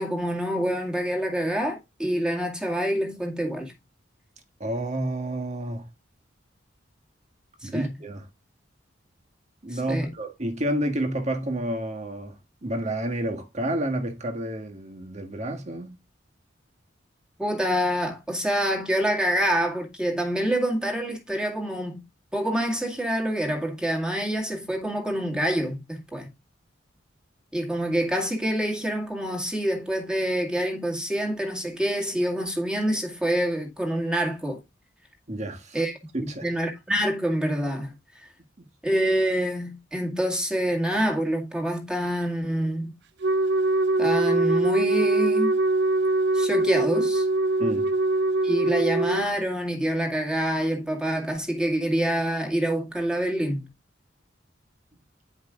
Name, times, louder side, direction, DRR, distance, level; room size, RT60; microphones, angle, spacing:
voice 1, 0.0-3.7 7.6-7.9 9.7-10.1 17.4-22.0 22.3-26.3 27.5-34.6 35.7-35.9 36.2-37.9 38.8-42.9 44.0-45.6 46.3-47.3 48.4-53.7, equal, 5° right, 2.1 m, -26 dB
voice 2, 4.6-5.9 7.6-8.3 9.6-12.3 12.6-16.0 35.3-35.8 36.1-36.5 38.6-38.7 47.6-47.9, right 1 dB, 40° right, 1.7 m, -30 dB
Wind instrument woodwind instrument, 43.2-49.3, right 2 dB, 60° right, 0.4 m, -23 dB
9.9 x 5.5 x 3.7 m
head